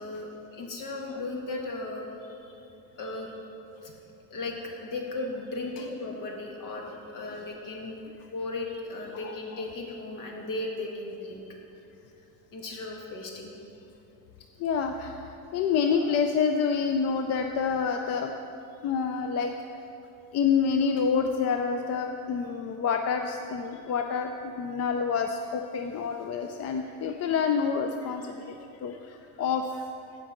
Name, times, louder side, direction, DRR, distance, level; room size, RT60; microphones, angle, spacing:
voice 1, 0.0-2.0 2.3-2.6 2.9-3.4 3.8-3.9 4.3-8.0 8.3-11.5 12.5-13.5, left 2 dB, 65° left, 0 dB, 1.7 m, -36 dB
voice 2, 9.1-9.6 14.6-18.4 18.8-19.5 20.3-24.3 24.6-29.9, left 6 dB, 50° left, 5 dB, 0.4 m, -28 dB
15.0 x 5.2 x 4.4 m, 2.9 s
cardioid pair, 165°, 34 cm